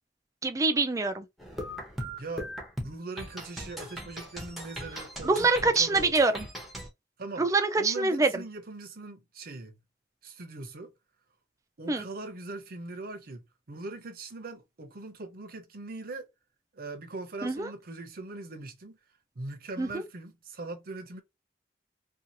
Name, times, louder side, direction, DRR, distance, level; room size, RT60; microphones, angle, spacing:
voice 1, 0.4-1.3 5.2-6.5 7.4-8.3 11.9-12.0 17.4-17.7 19.8-20.0, right 3 dB, 20° right, 0.4 m, -25 dB
sound 1, 1.4-6.9, equal, ahead, 0.7 m, -39 dB
voice 2, 2.2-2.5 2.8-6.1 7.2-7.5 7.8-9.8 10.2-10.9 11.8-13.4 13.7-16.3 16.7-19.0 19.4-21.2, right 3 dB, 55° right, 0.6 m, -41 dB
2.6 x 2.4 x 2.7 m
head